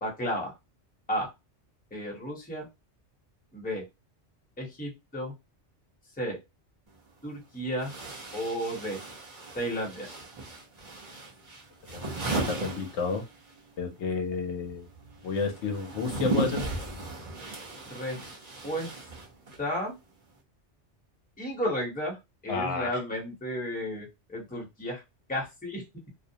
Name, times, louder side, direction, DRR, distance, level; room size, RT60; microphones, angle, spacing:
voice 1, 0.0-0.5 1.1-1.3 1.9-2.7 3.5-3.8 4.6-5.3 6.2-6.4 7.2-7.9 8.3-9.0 9.5-10.1 17.9-18.3 18.6-19.0 19.6-20.0 21.4-22.2 22.4-25.0 25.3-25.8, equal, 10° left, -2 dB, 0.8 m, -33 dB
sound 1, 6.9-7.0 7.8-13.6 13.8-19.7, right 2 dB, 40° right, 0.8 m, -36 dB
voice 2, 12.5-13.2 13.8-14.9 15.2-16.6 22.5-22.9, left 4 dB, 75° left, 5 dB, 0.9 m, -31 dB
2.5 x 2.0 x 2.7 m, 0.23 s
omnidirectional pair, 1.2 m